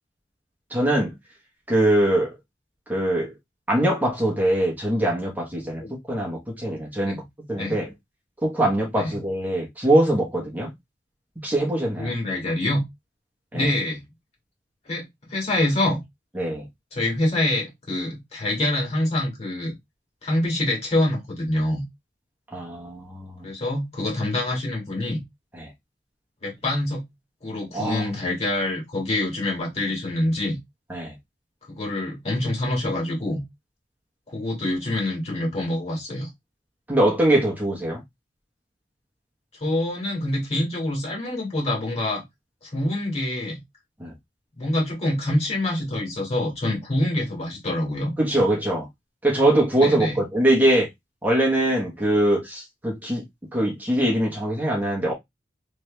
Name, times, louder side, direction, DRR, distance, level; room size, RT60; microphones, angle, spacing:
voice 1, 0.7-1.1 1.7-2.3 2.9-3.3 3.7-5.8 6.1-7.2 7.5-7.9 8.4-10.7 11.4-12.1 13.5-13.7 16.3-16.6 22.5-23.4 25.5-25.7 27.7-28.1 30.9-31.1 36.9-38.0 44.0-44.1 48.2-48.9 49.2-50.9 51.2-53.2 53.5-55.1, right 1 dB, 10° right, 1.1 m, -22 dB
voice 2, 12.0-12.8 13.5-14.0 14.9-15.0 15.3-16.0 16.9-19.7 20.2-21.8 23.4-25.2 26.4-27.0 27.4-30.6 31.7-33.4 34.3-36.3 39.6-42.2 42.6-43.6 44.6-48.1 49.8-50.2, left 1 dB, 35° left, 2.1 m, -25 dB
3.3 x 3.2 x 3.2 m
head